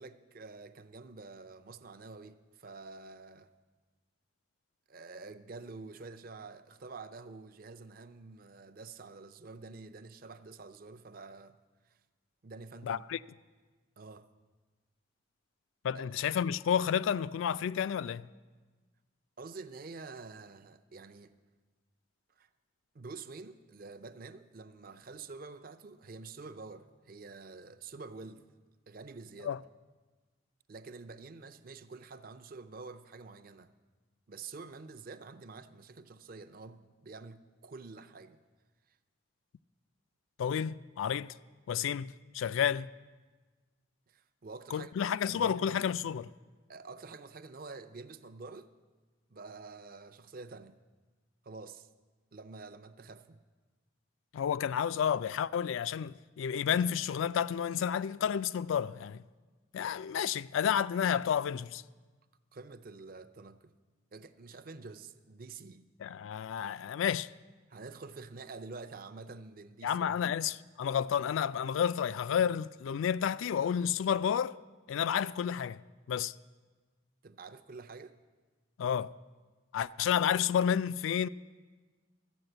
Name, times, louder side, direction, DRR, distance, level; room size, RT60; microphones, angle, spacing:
voice 1, 0.0-3.5 4.9-11.6 11.9-12.0 12.4-13.0 14.0-14.3 15.9-16.0 19.4-21.3 22.4-22.5 22.9-28.4 28.9-29.6 30.7-33.7 34.3-38.4 44.1-45.8 46.7-48.7 49.3-50.8 51.4-51.9 52.3-53.4 62.5-63.7 64.1-65.9 67.7-70.3 77.2-78.1, right 3 dB, 45° right, 0.5 m, -48 dB
voice 2, 12.8-13.2 15.8-18.3 29.4-29.6 40.4-41.3 41.7-42.9 44.7-46.3 54.3-59.2 59.7-61.8 66.0-67.3 69.8-74.6 74.9-75.8 76.1-76.3 78.8-79.1 79.7-81.3, left 8 dB, 75° left, 0.3 m, -31 dB
13.5 x 8.1 x 7.8 m
head